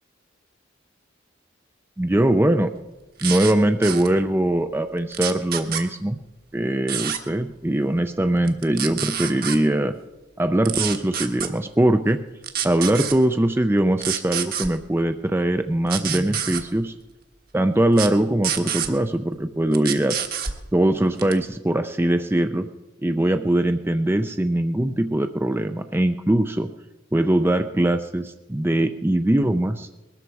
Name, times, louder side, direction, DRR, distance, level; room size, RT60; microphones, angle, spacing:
voice 1, 2.0-2.7 3.2-6.2 6.5-10.0 10.4-12.2 12.6-16.9 17.5-20.2 20.7-22.7 23.0-26.7 27.1-29.9, right 1 dB, 10° right, 8 dB, 0.5 m, -21 dB
sound 1, 3.2-3.5 3.8-4.1 5.1-5.8 6.9-7.2 8.5-9.6 10.7-11.5 12.4-13.2 14.0-14.7 15.9-16.6 17.9-18.1 18.4-18.9 19.7-20.6 21.2-21.4, right 9 dB, 50° right, 1.4 m, -27 dB
21.0 x 13.0 x 4.7 m, 1.1 s
head